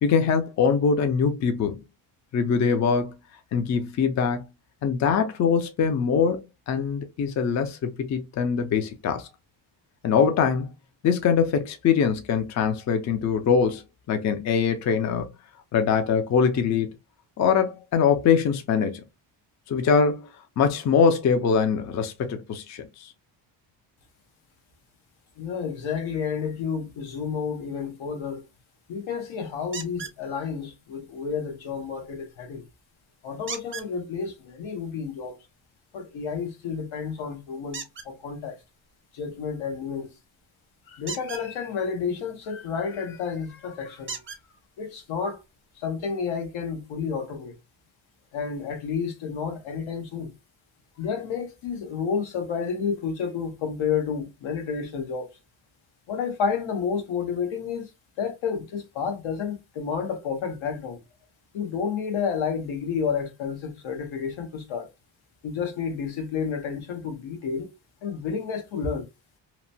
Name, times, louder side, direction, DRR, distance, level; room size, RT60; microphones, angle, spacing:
voice 1, 0.0-1.8 2.3-3.1 3.5-4.5 4.8-9.3 10.0-10.7 11.0-15.3 15.7-16.9 17.4-19.0 19.7-20.3 20.6-23.1, left 6 dB, 40° left, 0.4 m, -23 dB
voice 2, 25.4-28.4 28.9-32.6 33.2-35.4 35.9-38.6 39.1-40.1 40.9-44.2 44.8-45.4 45.8-47.6 48.3-50.3 51.0-55.3 56.1-57.9 58.2-61.0 61.5-64.9 65.4-67.7 68.0-69.1, left 6 dB, 80° left, 1.0 m, -30 dB
sound 1, 29.7-30.2 33.5-33.9 37.7-38.1 41.0-41.4 43.1-43.2 44.1-44.4 45.4-45.5 46.0-46.1, right 6 dB, 25° right, 0.5 m, -36 dB
2.9 x 2.1 x 2.6 m
cardioid pair, 130°, 47 cm